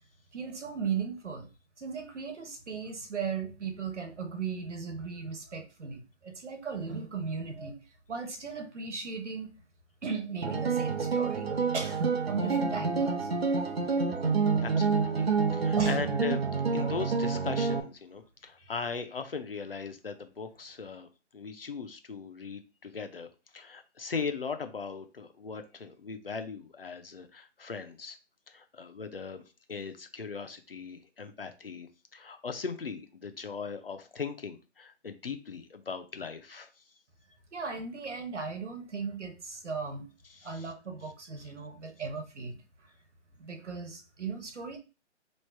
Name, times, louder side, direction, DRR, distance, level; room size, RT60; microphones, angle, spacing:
voice 1, 0.3-1.5 1.8-7.8 8.1-9.5 10.0-11.5 11.7-13.3 15.8-16.0 37.5-40.1 40.4-42.6 43.4-44.8, right 5 dB, 75° right, 6 dB, 1.2 m, -37 dB
sound 1, 10.4-17.8, right 5 dB, 55° right, 0.8 m, -28 dB
voice 2, 14.6-16.4 16.7-21.1 21.3-23.3 23.5-28.2 28.5-29.4 29.7-36.7 40.3-40.7, left 5 dB, 50° left, 7 dB, 0.6 m, -39 dB
3.2 x 2.5 x 4.4 m, 0.31 s
hypercardioid pair, 180°, 36 cm